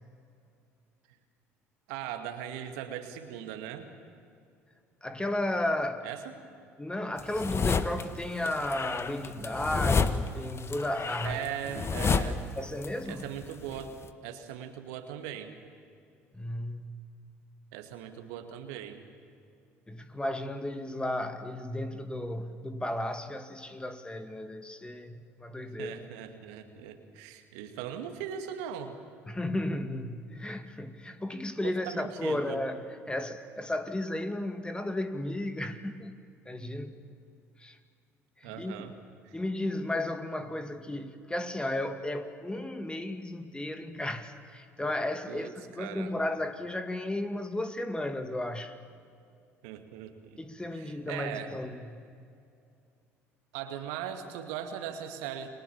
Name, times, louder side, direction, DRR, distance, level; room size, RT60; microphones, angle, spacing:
voice 1, 1.9-3.9 6.0-6.3 11.2-12.4 13.1-14.0 14.2-15.5 17.7-19.0 25.8-29.0 31.6-32.6 38.4-38.9 39.3-39.4 45.3-45.5 45.8-46.1 49.6-50.4 50.7-51.5 53.5-55.5, right 9 dB, 70° right, 2.3 m, -39 dB
voice 2, 5.0-6.1 6.8-11.5 12.6-13.3 16.3-17.1 19.9-26.0 29.3-36.1 36.5-37.0 37.6-37.8 38.4-38.9 39.3-48.8 50.4-52.0, left 1 dB, 10° left, 2.3 m, -34 dB
sound 1, 7.2-8.0 8.4-12.9 13.1-14.0, left 5 dB, 35° left, 1.6 m, -30 dB
30.0 x 23.0 x 7.3 m
hypercardioid pair, 60°, 8 cm